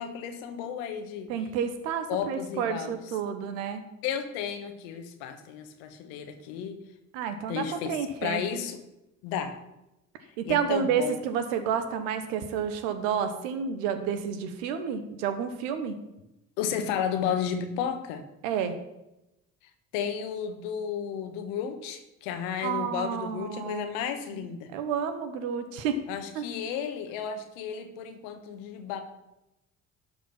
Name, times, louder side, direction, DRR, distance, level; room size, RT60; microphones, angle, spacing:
voice 1, 0.0-1.3 2.1-3.0 4.0-6.8 7.5-8.8 9.2-9.5 10.4-11.2 16.6-18.2 19.9-24.7 26.1-29.0, left 8 dB, 75° left, 7 dB, 1.3 m, -33 dB
voice 2, 1.3-3.8 7.1-8.4 10.4-16.0 18.4-18.7 22.6-23.9 24.3-24.5 24.7-26.0 26.3-26.5, right 7 dB, 75° right, 9 dB, 1.2 m, -30 dB
12.0 x 5.0 x 5.9 m, 0.92 s
hypercardioid pair, 50°, 40 cm